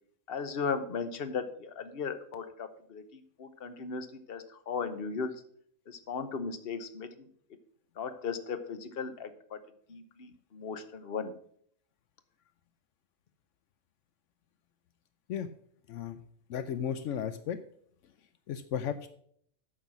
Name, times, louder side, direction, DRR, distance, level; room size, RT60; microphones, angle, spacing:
voice 1, 0.3-5.3 5.9-7.3 8.0-9.6 9.9-11.3, left 5 dB, 50° left, 10 dB, 1.1 m, -37 dB
voice 2, 15.9-16.2 16.5-17.6 18.5-19.1, left 8 dB, 80° left, 11 dB, 1.0 m, -34 dB
9.2 x 6.4 x 6.1 m, 0.62 s
omnidirectional pair, 1.3 m